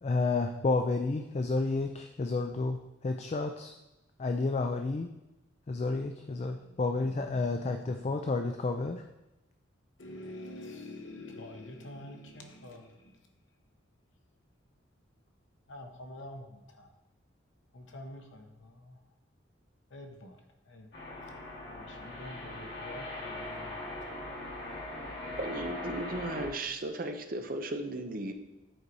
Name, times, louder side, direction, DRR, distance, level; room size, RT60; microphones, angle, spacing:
voice 1, 0.0-3.7 4.2-5.1 5.7-9.0, left 3 dB, 35° left, 6 dB, 0.3 m, -31 dB
voice 2, 6.0-6.8 7.2-8.1 10.0-13.2 15.7-16.9 17.7-19.0 19.9-20.4 20.7-20.9 21.7-24.1, left 1 dB, 75° left, 5 dB, 0.9 m, -47 dB
sound 1, 20.9-26.5, left 1 dB, 55° left, 2.0 m, -40 dB
voice 3, 25.4-28.3, right 2 dB, 45° right, 6 dB, 0.6 m, -36 dB
7.8 x 4.6 x 4.1 m, 0.96 s
head